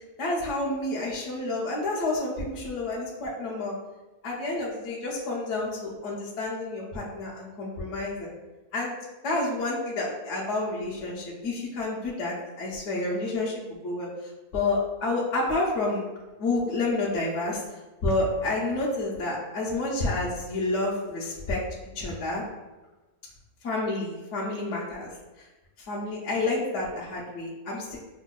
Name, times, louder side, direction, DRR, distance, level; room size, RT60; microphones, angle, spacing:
voice 1, 0.2-3.7 4.2-8.3 8.7-9.0 9.2-14.1 14.5-16.1 16.4-17.6 18.0-21.6 21.9-22.4 23.6-25.1 25.8-28.0, left 2 dB, 60° left, -6 dB, 0.9 m, -29 dB
5.0 x 2.1 x 2.2 m, 1.1 s
omnidirectional pair, 1.6 m